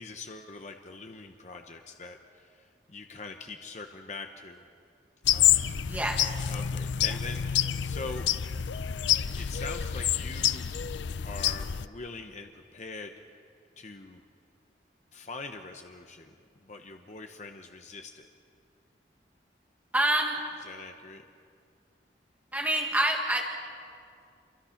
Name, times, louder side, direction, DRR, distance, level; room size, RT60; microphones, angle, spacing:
voice 1, 0.0-4.7 5.3-5.6 6.5-8.3 9.3-10.8 11.2-13.1 13.8-14.2 15.1-16.3 16.6-18.3 20.6-21.2, left 3 dB, 40° left, 5 dB, 0.9 m, -43 dB
sound 1, 5.3-11.9, left 10 dB, 90° left, 0.5 m, -28 dB
voice 2, 5.9-6.4 7.0-7.1 19.9-20.4 22.5-23.5, right 1 dB, 10° right, 1 dB, 1.7 m, -27 dB
28.5 x 23.5 x 5.9 m, 2.3 s
head